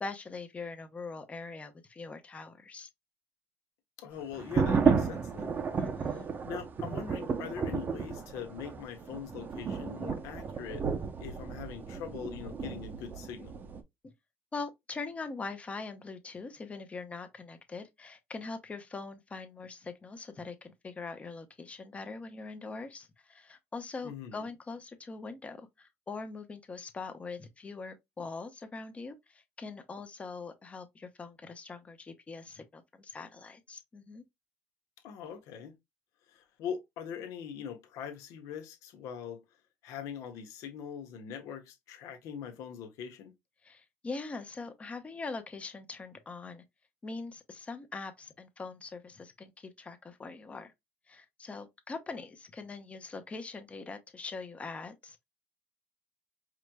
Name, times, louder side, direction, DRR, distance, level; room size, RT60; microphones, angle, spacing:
voice 1, 0.0-2.9 5.7-6.3 14.0-14.1 14.5-34.2 43.6-46.6 47.0-50.7 51.1-55.2, left 4 dB, 20° left, 0.8 m, -42 dB
voice 2, 4.0-5.6 6.1-10.8 11.2-13.5 24.0-24.5 35.0-35.7 36.3-39.4 39.8-43.3, left 8 dB, 70° left, 1.1 m, -42 dB
sound 1, 4.3-13.8, right 5 dB, 35° right, 0.6 m, -32 dB
4.8 x 3.1 x 2.2 m
cardioid pair, 110°, 6 cm